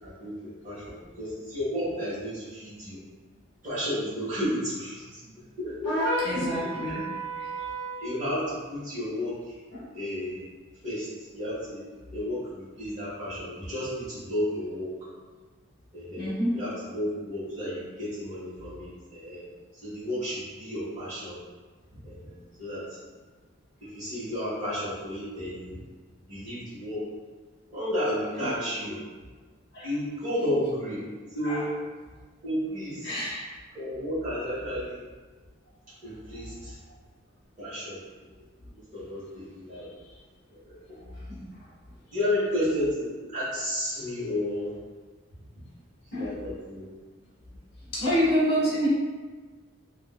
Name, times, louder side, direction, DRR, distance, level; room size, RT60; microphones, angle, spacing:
voice 1, 0.0-3.0 3.6-7.0 8.0-9.6 9.9-10.4 10.8-11.1 11.3-11.8 12.1-15.1 15.9-19.4 19.7-21.4 21.9-23.0 23.8-25.8 26.3-27.0 27.7-29.0 29.8-31.1 31.3-31.7 32.4-33.3 33.7-35.0 36.0-36.8 37.6-38.4 38.7-39.9 40.6-40.8 42.1-44.7 46.2-46.9, equal, 35° right, -10 dB, 1.3 m, -32 dB
sound 1, 5.8-8.1, right 1 dB, 5° right, 1.2 m, -31 dB
voice 2, 6.2-7.0 7.4-7.7 9.7-9.9 16.2-16.6 28.4-28.5 29.7-29.9 31.4-31.6 33.0-33.4 40.9-41.5 46.1-46.3 47.9-48.9, equal, 50° left, -8 dB, 1.1 m, -28 dB
3.4 x 2.5 x 2.2 m, 1.4 s
head